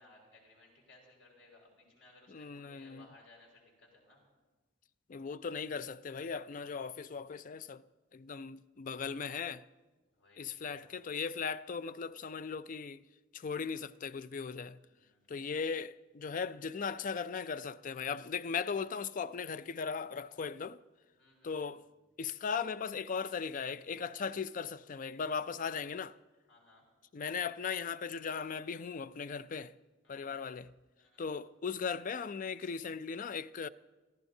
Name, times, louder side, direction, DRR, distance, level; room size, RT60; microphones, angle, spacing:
voice 1, 0.0-4.2 10.1-11.0 14.8-15.5 17.4-17.5 21.1-21.9 26.5-26.8 30.0-30.4 31.0-31.4 32.6-32.7, left 2 dB, 80° left, 5.2 m, -62 dB
voice 2, 2.3-3.1 5.1-7.8 8.1-9.6 10.4-13.0 13.3-14.8 15.3-20.8 21.4-21.8 22.2-26.1 27.1-29.7 30.1-30.7 31.2-33.7, left 6 dB, 45° left, 0.4 m, -38 dB
26.5 x 15.0 x 2.7 m
head